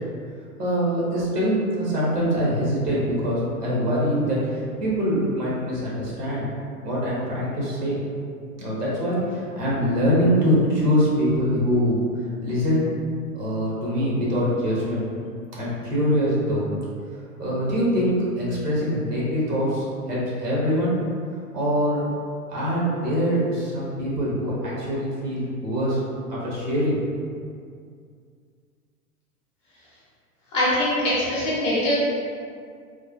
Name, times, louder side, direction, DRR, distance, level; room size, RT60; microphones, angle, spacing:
voice 1, 0.6-6.5 6.8-8.0 8.6-12.1 12.4-12.9 13.3-15.0 15.5-16.6 17.4-20.9 21.5-22.0 22.5-26.0 26.3-27.0, equal, 90° right, -6 dB, 1.0 m, -23 dB
voice 2, 30.5-31.9, left 1 dB, 15° left, -9 dB, 0.4 m, -22 dB
3.2 x 2.1 x 2.3 m, 2.3 s
figure-of-eight pair, 105°, 46 cm